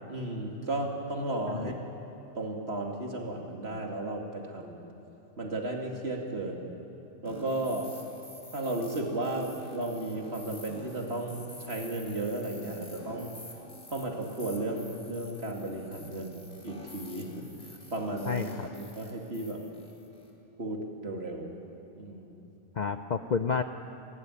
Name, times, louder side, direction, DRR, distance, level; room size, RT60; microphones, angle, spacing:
voice 1, 0.0-1.7 2.4-4.8 5.4-6.7 7.2-7.9 8.5-13.3 13.9-17.5 17.9-19.6 20.6-21.6 22.0-22.4, right 2 dB, 50° right, 1 dB, 2.6 m, -34 dB
sound 1, 7.2-20.3, left 1 dB, 30° left, 3.0 m, -49 dB
voice 2, 18.3-18.7 22.8-23.6, left 6 dB, 50° left, 9 dB, 0.5 m, -30 dB
27.0 x 12.5 x 9.8 m, 2.9 s
omnidirectional pair, 1.4 m